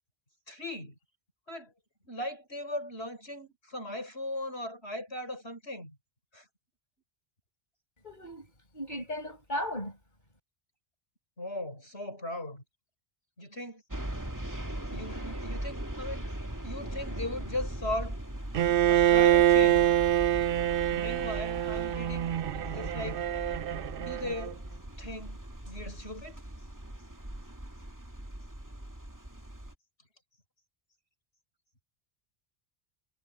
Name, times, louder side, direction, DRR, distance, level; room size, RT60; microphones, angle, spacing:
voice 1, 0.5-0.9 1.5-1.7 2.0-6.0 6.3-6.4 11.4-12.6 13.4-13.8 14.9-16.2 16.6-18.2 18.9-19.9 20.9-23.2 24.0-24.6 25.0-25.4 25.7-26.4, left 1 dB, 75° left, 6.7 m, -38 dB
voice 2, 8.0-8.5 8.7-10.0, left 1 dB, 45° left, 6.6 m, -36 dB
sound 1, 13.9-29.8, right 1 dB, 15° right, 2.2 m, -40 dB
Bowed string instrument, 18.5-24.5, right 12 dB, 60° right, 0.8 m, -25 dB
omnidirectional pair, 1.1 m